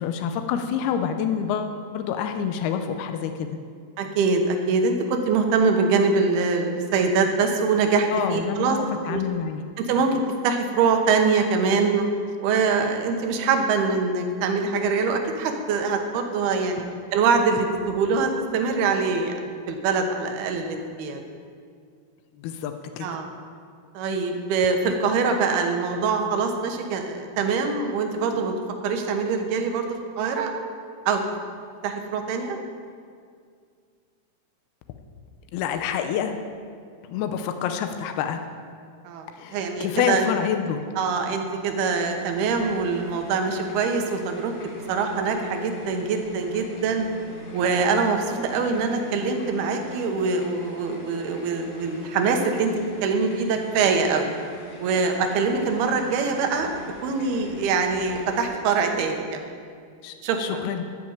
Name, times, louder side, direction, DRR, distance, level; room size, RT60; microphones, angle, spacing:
voice 1, 0.0-3.6 8.1-9.6 22.4-23.1 35.5-36.4 37.1-38.4 39.4-40.8 60.0-60.8, left 8 dB, 90° left, 7 dB, 2.6 m, -27 dB
voice 2, 4.0-8.8 9.1-9.2 9.8-12.1 12.4-16.8 17.1-21.2 23.0-23.3 23.9-28.6 28.8-30.5 31.1-31.2 31.8-32.6 39.0-39.3 39.5-40.3 41.0-44.5 44.9-47.1 47.5-52.7 53.0-54.3 54.8-56.8 57.0-59.5 60.2-60.6, right 4 dB, 85° right, 4 dB, 3.1 m, -24 dB
sound 1, 41.9-58.6, equal, 55° left, 1.8 m, -42 dB
13.0 x 6.2 x 8.9 m, 2.2 s
omnidirectional pair, 4.4 m